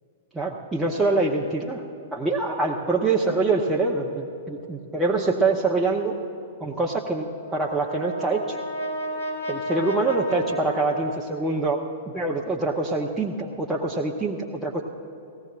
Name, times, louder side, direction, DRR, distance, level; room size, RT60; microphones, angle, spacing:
voice 1, 0.3-1.8 2.1-6.2 6.6-8.6 9.5-11.8 12.1-14.8, right 3 dB, 10° right, -3 dB, 0.9 m, -25 dB
Brass instrument, 7.4-11.8, equal, 75° left, 2.1 m, -32 dB
18.5 x 16.0 x 2.5 m, 2.8 s
figure-of-eight pair, 105°, 0 cm